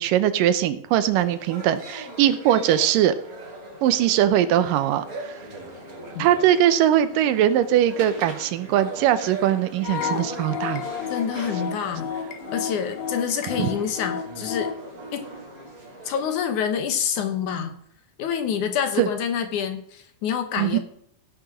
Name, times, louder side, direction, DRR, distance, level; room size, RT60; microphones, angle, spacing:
voice 1, 0.0-3.1 3.8-5.4 6.2-10.8 13.6-13.7 19.0-19.1 20.6-20.8, right 11 dB, 80° right, 12 dB, 2.4 m, -21 dB
sound 1, 1.1-16.4, right 2 dB, 25° right, 3.2 m, -40 dB
sound 2, 9.8-14.8, left 7 dB, 85° left, 2.9 m, -31 dB
voice 2, 11.1-12.1 12.5-14.7 15.1-15.3 16.1-17.7 18.2-20.8, left 7 dB, 70° left, 8 dB, 2.4 m, -27 dB
16.5 x 6.3 x 6.2 m, 0.68 s
omnidirectional pair, 4.0 m